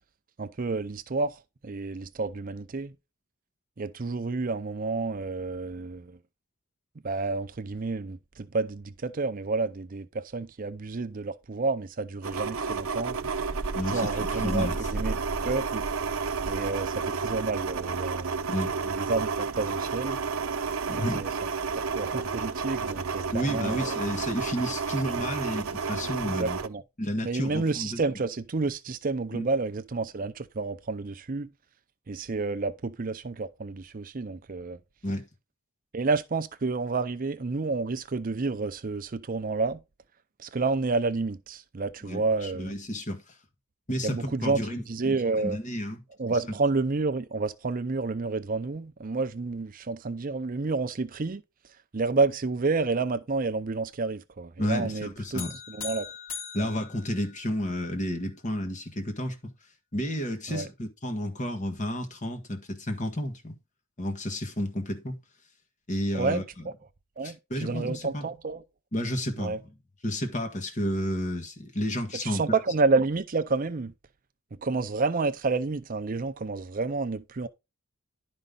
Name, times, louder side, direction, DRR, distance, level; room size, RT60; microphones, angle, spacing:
voice 1, 0.4-2.9 3.8-6.2 7.0-13.2 13.9-15.2 15.4-15.9 16.4-18.5 18.8-20.2 20.9-21.3 21.9-24.0 26.4-26.8 27.2-31.5 32.1-34.8 35.9-39.8 40.4-42.7 44.0-44.6 44.9-45.6 46.2-51.4 51.9-56.1 56.5-56.7 60.5-60.7 66.1-66.7 67.2-68.6 69.4-69.6 72.2-73.9 74.6-77.5, right 3 dB, 40° right, 0.5 m, -30 dB
sound 1, 12.2-26.7, right 5 dB, 70° right, 0.8 m, -31 dB
voice 2, 13.7-14.9 18.5-18.7 20.9-21.3 23.3-26.6 27.0-28.0 29.3-29.4 35.0-35.3 42.0-43.4 43.9-46.0 54.6-55.6 56.5-59.5 59.9-63.6 64.0-65.2 65.9-66.4 67.2-68.2 68.9-69.6 70.0-72.6, equal, 35° left, 1.5 m, -31 dB
sound 2, 55.4-57.8, left 7 dB, 70° left, 2.6 m, -40 dB
11.0 x 5.3 x 3.8 m
head